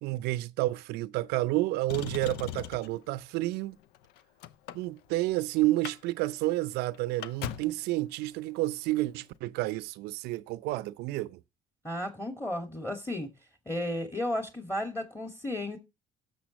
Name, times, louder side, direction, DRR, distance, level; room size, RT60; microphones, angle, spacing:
voice 1, 0.0-3.8 4.7-11.4, right 18 dB, 70° right, 0.6 m, -30 dB
Motor vehicle (road), 1.9-3.0 3.8-5.3 5.7-6.0 6.3-6.4 6.7-7.8 8.9-9.0, left 11 dB, 70° left, 0.7 m, -39 dB
voice 2, 11.8-13.3 13.7-15.8, left 1 dB, 15° left, 2.1 m, -33 dB
17.0 x 6.9 x 3.0 m
hypercardioid pair, 60°, 17 cm